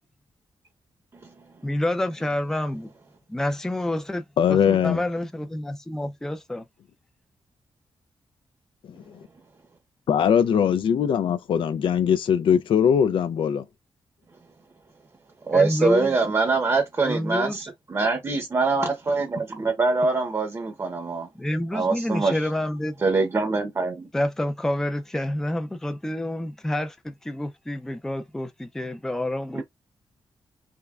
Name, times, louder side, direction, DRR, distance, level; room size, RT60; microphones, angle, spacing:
voice 1, 1.6-2.9 3.3-6.7 15.5-16.2 17.0-17.7 21.4-23.0 24.1-29.6, left 1 dB, 5° left, 0.4 m, -28 dB
voice 2, 4.4-5.0 8.8-9.2 10.1-13.6, left 8 dB, 70° left, 0.4 m, -21 dB
voice 3, 15.5-21.3 21.7-22.4 23.0-24.1, right 3 dB, 30° right, 0.7 m, -24 dB
3.6 x 3.2 x 2.3 m
wide cardioid pair, 135°, 9 cm